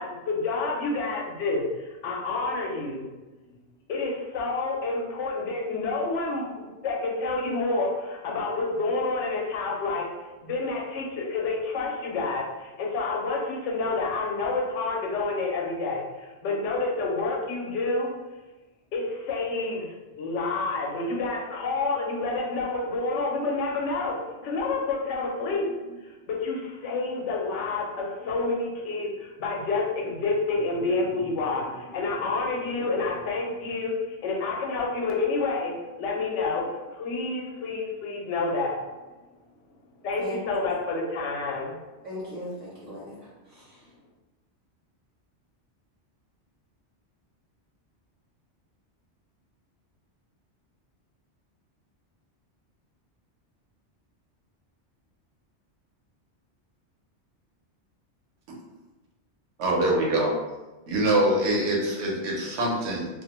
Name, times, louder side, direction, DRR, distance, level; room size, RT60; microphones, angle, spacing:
voice 1, 0.0-3.0 3.9-10.1 10.4-16.0 16.4-18.1 18.9-19.9 20.1-26.0 26.3-35.7 36.0-38.8 40.0-41.7, left 3 dB, 85° left, -1 dB, 0.9 m, -28 dB
voice 2, 42.0-43.9, equal, 35° right, -8 dB, 0.7 m, -39 dB
voice 3, 59.6-60.3 60.9-63.1, right 1 dB, 70° right, -2 dB, 0.9 m, -24 dB
2.4 x 2.0 x 2.8 m, 1.1 s
omnidirectional pair, 1.2 m